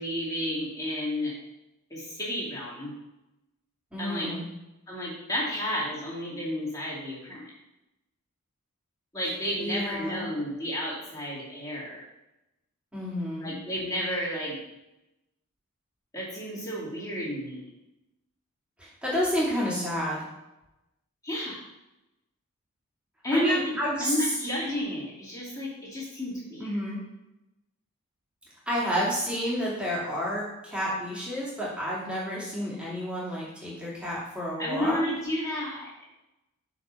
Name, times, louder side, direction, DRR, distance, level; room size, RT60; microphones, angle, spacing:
voice 1, 0.0-1.3 1.9-2.9 4.0-4.3 4.9-7.5 9.1-12.0 13.4-14.6 16.1-17.7 21.2-21.6 23.2-26.7 34.6-35.9, equal, 15° left, -8 dB, 2.7 m, -31 dB
voice 2, 3.9-4.5 9.6-10.3 12.9-13.5 18.8-20.2 23.3-24.1 24.4-24.5 26.6-27.0 28.7-35.0, equal, 5° right, -7 dB, 2.6 m, -30 dB
6.3 x 5.2 x 5.6 m, 0.94 s
head